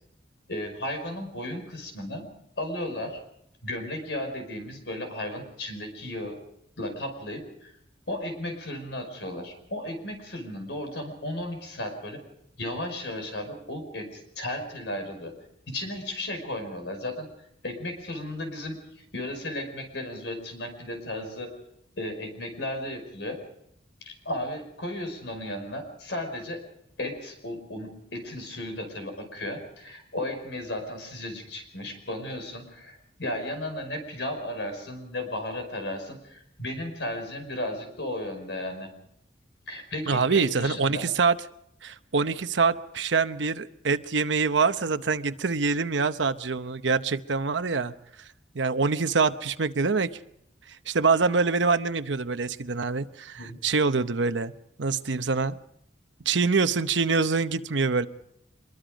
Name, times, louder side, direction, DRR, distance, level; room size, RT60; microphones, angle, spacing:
voice 1, 0.5-2.3 2.6-3.2 3.6-6.4 6.8-7.7 8.1-12.2 12.6-15.3 15.7-17.3 17.6-21.5 22.0-23.4 24.0-26.6 27.0-38.9 39.7-41.1 53.4-53.6, left 1 dB, 75° left, 6 dB, 5.2 m, -35 dB
voice 2, 40.1-41.4 41.8-47.9 48.5-50.1 50.9-54.5 54.8-55.6 56.3-58.1, right 4 dB, 85° right, 10 dB, 0.9 m, -25 dB
25.0 x 22.0 x 5.2 m, 0.75 s
head